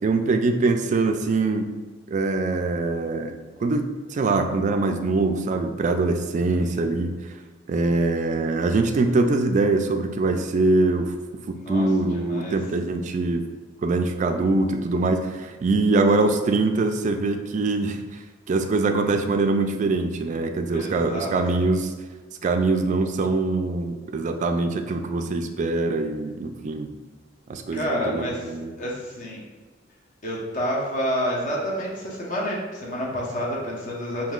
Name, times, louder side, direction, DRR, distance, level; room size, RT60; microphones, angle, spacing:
voice 1, 0.0-1.7 2.1-7.1 7.7-13.4 13.8-18.2 18.5-21.9 22.4-26.9 27.5-28.8, right 3 dB, 40° right, 6 dB, 0.3 m, -23 dB
voice 2, 6.5-6.8 11.6-12.6 20.7-21.6 27.7-28.5 28.8-29.4 30.2-34.3, equal, 45° left, -4 dB, 0.9 m, -29 dB
5.3 x 2.7 x 2.4 m, 1.4 s
head